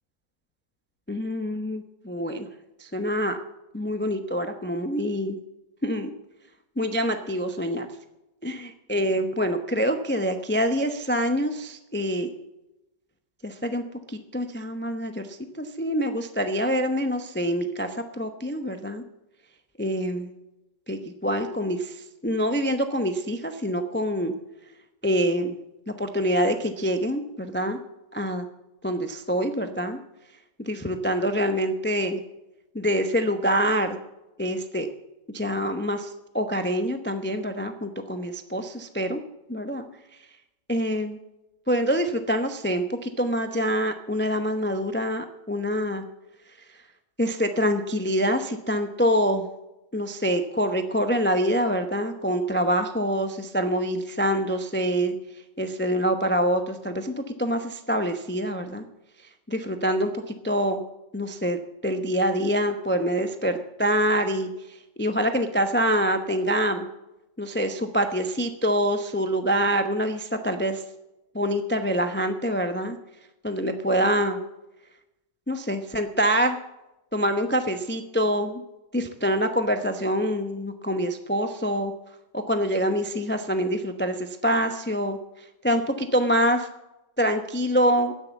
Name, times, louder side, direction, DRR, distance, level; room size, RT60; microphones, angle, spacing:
voice 1, 1.1-2.5 2.8-3.4 3.7-5.4 5.8-6.1 6.8-7.9 8.4-12.3 13.4-19.0 19.8-20.3 20.9-24.3 25.0-25.6 25.9-27.8 28.1-28.5 28.8-30.0 30.6-32.2 32.7-34.0 34.4-34.9 35.3-39.2 39.5-39.9 40.7-41.2 41.7-46.0 47.2-49.5 49.9-55.1 55.6-58.8 59.5-60.8 61.1-66.9 67.4-70.8 71.3-73.0 73.4-74.4 75.5-76.6 77.1-78.6 78.9-81.9 82.3-85.2 85.6-86.7 87.2-88.1, equal, 15° left, 6 dB, 0.4 m, -25 dB
12.5 x 9.7 x 7.1 m, 0.94 s
omnidirectional pair, 1.9 m